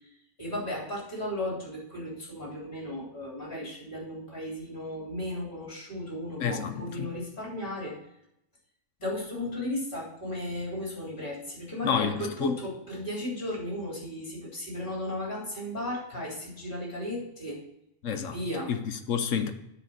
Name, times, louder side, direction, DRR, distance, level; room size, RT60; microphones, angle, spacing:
voice 1, 0.4-8.0 9.0-17.6 18.1-18.7, left 1 dB, 40° left, 3.7 m, -35 dB
voice 2, 6.4-7.1 11.8-12.5 18.0-18.4 18.7-19.5, left 7 dB, 70° left, 1.2 m, -29 dB
9.9 x 4.4 x 6.4 m
omnidirectional pair, 1.4 m